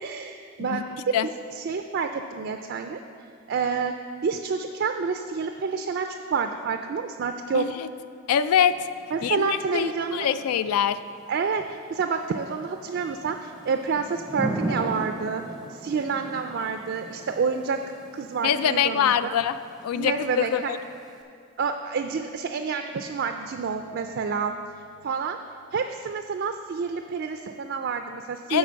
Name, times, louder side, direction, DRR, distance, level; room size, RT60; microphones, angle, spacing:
voice 1, 0.0-1.2 1.5-3.0 3.5-3.9 4.2-7.7 9.1-10.3 11.3-11.6 11.9-15.4 15.7-17.8 18.1-19.3 19.9-20.7 21.6-24.6 25.0-25.4 25.7-28.6, right 5 dB, 50° right, 6 dB, 0.3 m, -28 dB
voice 2, 7.5-7.9 8.3-8.9 9.2-11.0 18.4-19.6 19.8-20.8 28.5-28.6, left 9 dB, 85° left, 14 dB, 0.3 m, -24 dB
Thunder / Rain, 8.5-21.2, right 2 dB, ahead, 0.5 m, -39 dB
10.0 x 4.0 x 6.7 m, 2.4 s
head